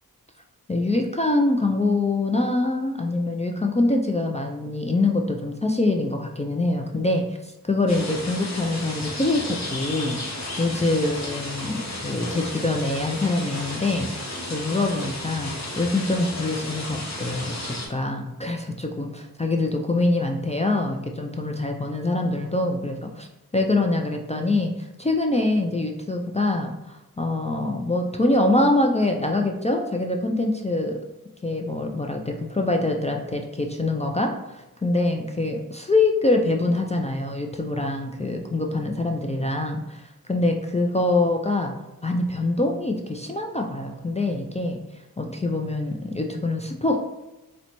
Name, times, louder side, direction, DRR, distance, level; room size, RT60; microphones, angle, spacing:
voice 1, 0.7-10.2 10.6-23.3 23.5-31.0 31.4-41.7 42.0-44.8 45.2-47.0, left 2 dB, 20° left, 2 dB, 0.3 m, -24 dB
sound 1, 7.9-17.9, left 1 dB, 50° left, 0.9 m, -33 dB
3.8 x 2.2 x 3.0 m, 1.0 s
wide cardioid pair, 40°, 37 cm